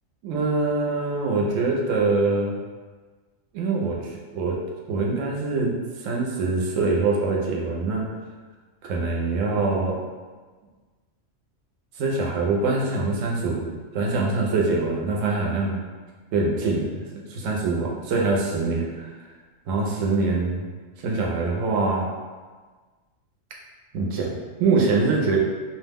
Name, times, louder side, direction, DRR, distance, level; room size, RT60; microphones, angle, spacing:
voice 1, 0.2-2.6 3.5-4.0 4.3-4.6 4.9-5.8 6.0-8.1 8.8-10.0 12.0-15.8 16.3-17.0 17.3-18.9 19.7-20.6 21.0-22.1 23.9-25.4, right 3 dB, 75° right, -1 dB, 0.9 m, -24 dB
2.4 x 2.1 x 3.3 m, 1.4 s
omnidirectional pair, 1.3 m